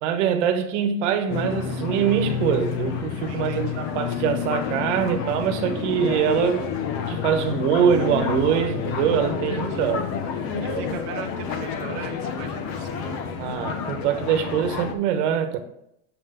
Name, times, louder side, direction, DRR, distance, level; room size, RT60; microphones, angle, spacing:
voice 1, 0.0-6.7 7.1-10.0 10.6-10.9 13.4-15.6, right 8 dB, 75° right, 1.2 m, -23 dB
sound 1, 1.3-14.9, left 6 dB, 40° left, 0.9 m, -29 dB
voice 2, 3.3-3.9 9.5-10.0 10.6-13.2, right 8 dB, 40° right, 0.8 m, -38 dB
7.7 x 3.9 x 6.7 m
cardioid pair, 180°, 36 cm